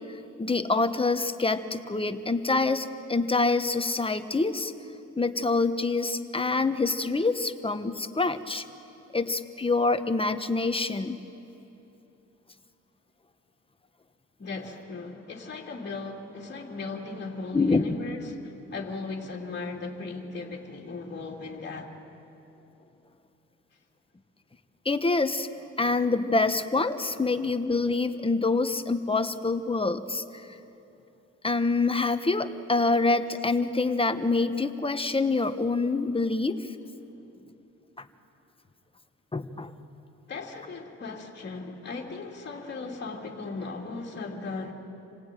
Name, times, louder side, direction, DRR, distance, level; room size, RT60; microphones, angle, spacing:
voice 1, 0.1-4.7 5.2-8.6 9.1-11.2 17.5-17.8 24.8-25.5 25.8-30.5 31.4-36.7 38.0-38.1 39.3-39.7, left 3 dB, 20° left, 9 dB, 1.2 m, -26 dB
voice 2, 14.4-21.9 40.3-44.7, left 3 dB, 35° left, -2 dB, 2.9 m, -37 dB
28.0 x 18.0 x 9.2 m, 2.9 s
cardioid pair, 90°, 30 cm